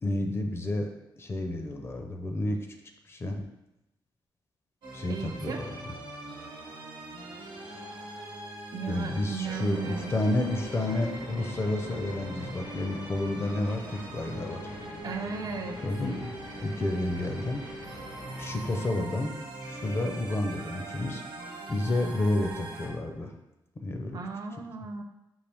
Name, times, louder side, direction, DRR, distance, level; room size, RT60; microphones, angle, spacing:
voice 1, 0.0-2.6 3.1-3.4 4.9-5.9 8.9-14.6 15.8-16.3 16.6-17.6 18.4-19.3 19.7-21.2 21.7-23.3 23.8-24.2, left 1 dB, 30° left, 4 dB, 0.5 m, -30 dB
sound 1, 4.8-22.9, right 2 dB, 65° right, 1.0 m, -42 dB
voice 2, 5.1-5.6 8.7-10.1 15.0-15.8 24.1-25.0, right 5 dB, 45° right, 5 dB, 0.3 m, -36 dB
sound 2, 9.4-18.9, left 2 dB, 85° left, 0.8 m, -45 dB
5.3 x 2.7 x 3.4 m, 0.92 s
wide cardioid pair, 150°, 9 cm